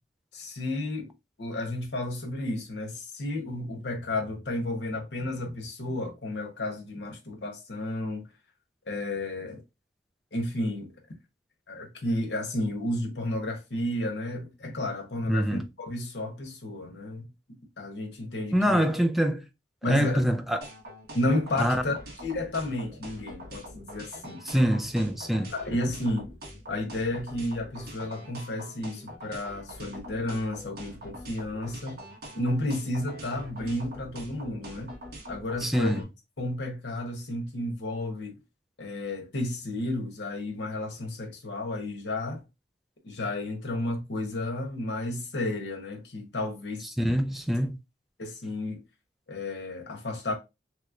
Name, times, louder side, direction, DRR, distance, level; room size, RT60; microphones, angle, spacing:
voice 1, 0.3-1.1 1.4-8.3 8.9-9.6 10.3-10.9 11.7-17.3 17.8-18.8 19.8-20.2 21.1-21.9 22.2-24.4 25.5-26.3 26.7-32.0 32.3-35.0 35.3-36.0 36.4-38.4 38.8-42.4 43.0-46.9 48.2-48.8 49.3-50.3, left 1 dB, 70° left, 0.9 m, -32 dB
voice 2, 15.3-15.6 18.5-19.5 19.9-20.7 21.5-21.8 24.4-25.5 35.6-36.0 47.0-47.8, equal, ahead, 0.3 m, -25 dB
sound 1, 20.6-36.0, equal, 55° right, 1.2 m, -44 dB
3.1 x 3.0 x 2.4 m
head